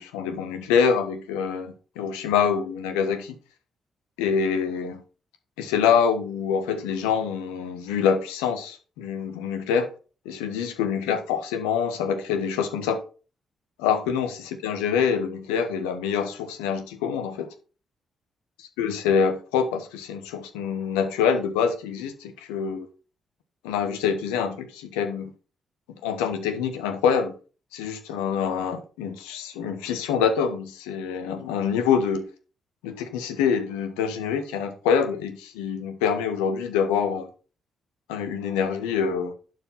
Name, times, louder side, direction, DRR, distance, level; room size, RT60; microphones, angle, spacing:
voice 1, 0.0-3.3 4.2-5.0 5.6-9.9 10.2-13.0 13.8-17.5 18.8-22.9 23.6-25.3 26.0-27.3 27.7-32.3 32.8-37.3 38.1-39.3, left 7 dB, 80° left, 1.3 m, -25 dB
11.0 x 4.8 x 5.7 m
hypercardioid pair, 40°, 0 cm